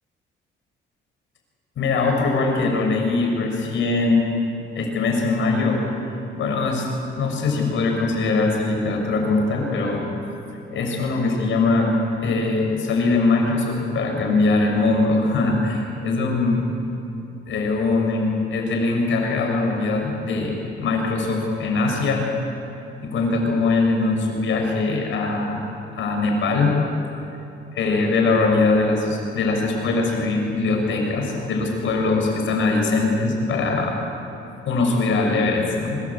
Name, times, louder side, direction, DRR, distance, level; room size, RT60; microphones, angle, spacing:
voice 1, 1.8-4.3 4.7-5.8 6.3-6.9 7.2-10.1 10.7-11.9 12.2-16.6 17.5-22.3 23.0-25.7 25.9-26.8 27.7-34.0 34.6-36.0, left 3 dB, 75° left, 1 dB, 6.5 m, -21 dB
24.5 x 22.5 x 8.7 m, 2.9 s
cardioid pair, 90°, 20 cm